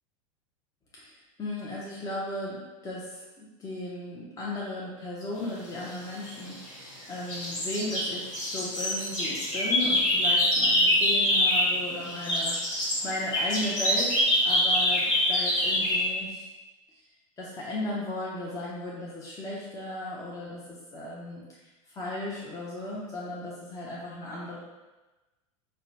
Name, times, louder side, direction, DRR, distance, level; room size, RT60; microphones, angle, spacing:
voice 1, 1.0-16.5 17.4-21.4 21.9-24.6, left 1 dB, 20° left, -5 dB, 0.7 m, -36 dB
sound 1, 6.1-7.0 7.3-11.8 12.0-16.1, left 1 dB, 55° left, 1.5 m, -25 dB
3.8 x 2.2 x 2.7 m, 1.1 s
hypercardioid pair, 95°, 17 cm